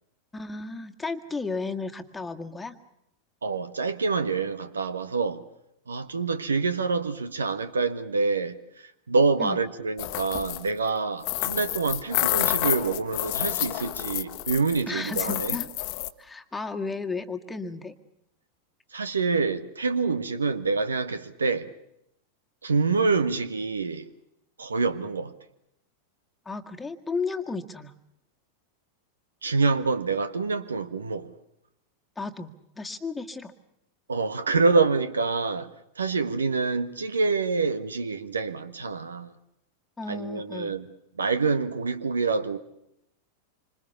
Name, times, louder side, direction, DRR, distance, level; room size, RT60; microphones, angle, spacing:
voice 1, 0.3-2.8 9.4-9.6 14.9-15.7 16.2-17.9 26.5-27.9 32.2-33.5 40.0-40.8, left 4 dB, 10° left, 1.9 m, -34 dB
voice 2, 3.4-5.4 5.9-8.6 9.1-15.6 18.9-21.7 22.6-24.1 24.6-25.3 29.4-31.3 34.1-35.7 36.0-39.3 40.1-40.9 41.2-42.6, right 4 dB, 75° right, 1.4 m, -26 dB
sound 1, 10.0-10.7 11.2-14.8 15.1-16.1, left 16 dB, 45° left, 1.3 m, -29 dB
27.0 x 26.0 x 7.0 m
figure-of-eight pair, 90°, 0 cm